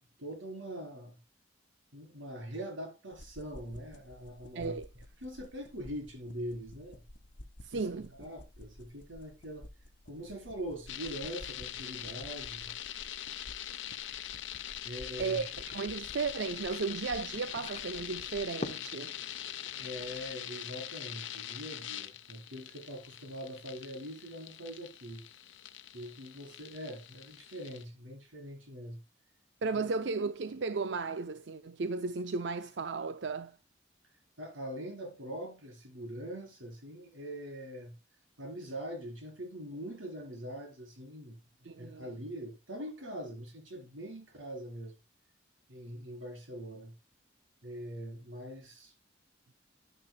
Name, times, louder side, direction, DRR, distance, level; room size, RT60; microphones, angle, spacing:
voice 1, 0.2-1.2 1.9-4.8 5.2-7.0 7.7-7.9 8.1-9.7 10.1-12.7 14.8-15.4 19.8-25.2 25.9-29.0 34.4-38.0 38.4-45.0 45.7-46.9 47.6-48.9, equal, 90° right, 4.0 m, -43 dB
sound 1, 3.1-18.5, left 1 dB, 65° left, 1.5 m, -53 dB
voice 2, 4.5-4.9 7.6-8.1 15.2-19.2 29.6-33.6 41.6-42.1, right 4 dB, 65° right, 0.5 m, -35 dB
sound 2, 10.9-27.8, left 11 dB, 85° left, 0.9 m, -43 dB
sound 3, 15.3-20.3, left 2 dB, 35° left, 0.8 m, -48 dB
11.0 x 10.5 x 2.2 m
head